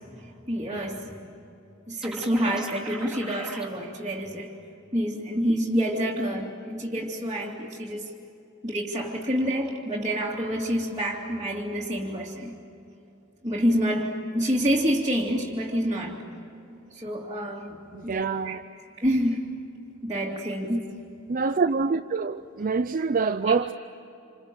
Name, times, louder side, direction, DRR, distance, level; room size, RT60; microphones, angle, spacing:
voice 1, 0.2-1.3 1.9-4.5 4.9-8.0 8.6-12.5 13.4-16.2 16.9-17.8 18.1-18.6 19.0-19.4 20.0-20.9, equal, 20° right, 2.6 m, -27 dB
sound 1, 2.0-3.7, right 2 dB, ahead, 3.4 m, -40 dB
voice 2, 17.9-18.6 21.3-23.7, right 4 dB, 40° right, 0.5 m, -25 dB
28.0 x 28.0 x 7.7 m
head